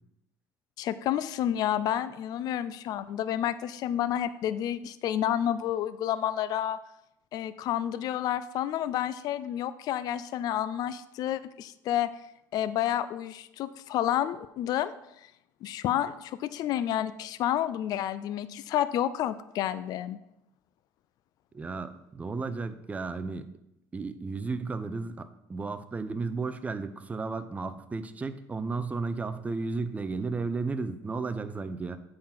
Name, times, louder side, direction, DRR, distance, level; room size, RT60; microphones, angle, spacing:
voice 1, 0.8-6.8 7.3-12.1 12.5-14.9 15.6-20.2, left 11 dB, 55° left, 14 dB, 0.4 m, -30 dB
voice 2, 21.5-23.5 23.9-32.0, right 4 dB, 15° right, 10 dB, 0.6 m, -33 dB
8.5 x 3.9 x 5.7 m, 0.85 s
cardioid pair, 120°, 8 cm